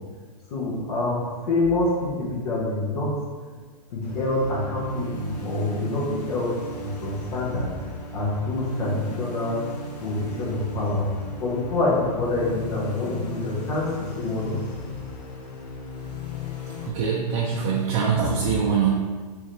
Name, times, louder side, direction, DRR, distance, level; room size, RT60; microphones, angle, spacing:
voice 1, 0.5-1.2 1.5-3.1 3.9-6.5 6.8-7.7 8.1-9.6 10.0-11.1 11.4-13.9 14.2-14.9, left 2 dB, 65° left, -5 dB, 1.3 m, -26 dB
sound 1, 4.0-16.9, left 1 dB, 80° left, 0.8 m, -36 dB
voice 2, 16.4-18.9, right 6 dB, 45° right, -2 dB, 0.4 m, -24 dB
3.6 x 3.0 x 3.2 m, 1.5 s
hypercardioid pair, 150°, 21 cm